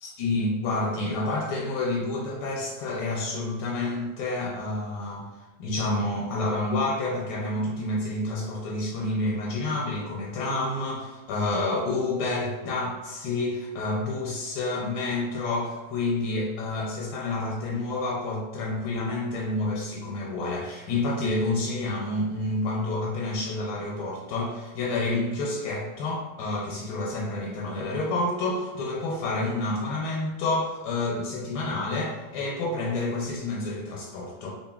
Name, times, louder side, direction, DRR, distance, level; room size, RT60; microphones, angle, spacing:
voice 1, 0.2-5.3 5.6-34.5, left 2 dB, 85° left, -3 dB, 1.2 m, -29 dB
3.0 x 2.6 x 2.3 m, 1.2 s
omnidirectional pair, 1.7 m